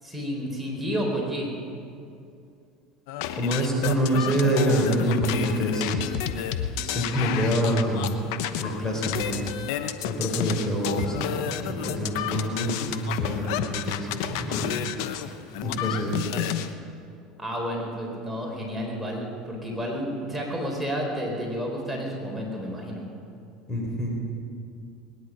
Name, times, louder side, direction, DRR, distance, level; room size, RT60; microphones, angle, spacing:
voice 1, 0.0-1.5 17.4-23.0, equal, 5° right, -2 dB, 4.1 m, -31 dB
sound 1, 3.1-16.7, left 10 dB, 70° left, 0.9 m, -30 dB
voice 2, 3.4-6.0 6.8-8.1 8.6-9.4 10.0-11.4 11.7-14.7 15.6-16.2 23.7-24.1, right 1 dB, 20° left, 0 dB, 4.0 m, -26 dB
21.0 x 10.5 x 6.3 m, 2.5 s
hypercardioid pair, 85°, 2 cm